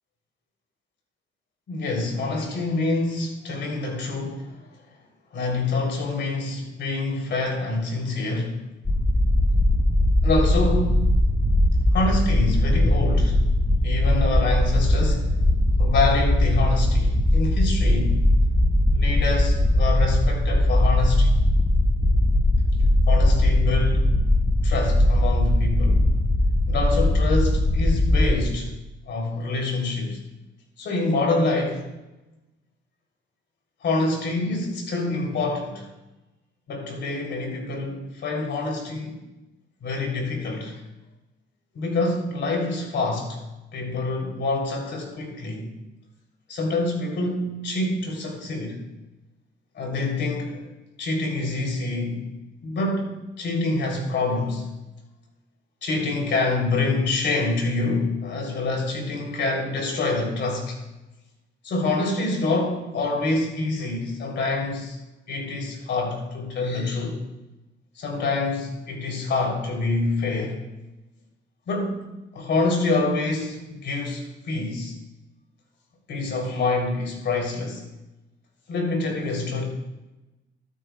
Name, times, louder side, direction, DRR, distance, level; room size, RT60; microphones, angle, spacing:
voice 1, 1.7-4.5 5.3-8.5 10.2-11.1 11.9-13.4 13.8-15.4 15.8-18.2 18.9-21.4 23.1-24.1 24.6-26.0 26.7-28.7 29.1-30.2 30.8-31.9 33.8-35.9 36.7-39.2 39.8-40.7 41.7-43.4 43.7-45.7 46.5-48.8 49.7-50.6 51.0-52.2 52.6-53.1 53.4-54.7 55.8-60.8 61.6-65.0 65.3-67.2 67.9-70.6 71.7-72.0 72.3-75.0 76.1-77.8 78.7-79.6, left 3 dB, 65° left, 1 dB, 3.3 m, -26 dB
sound 1, 8.8-28.4, left 1 dB, 20° left, 1.4 m, -20 dB
13.5 x 13.0 x 2.3 m, 1.0 s
cardioid pair, 90°, 20 cm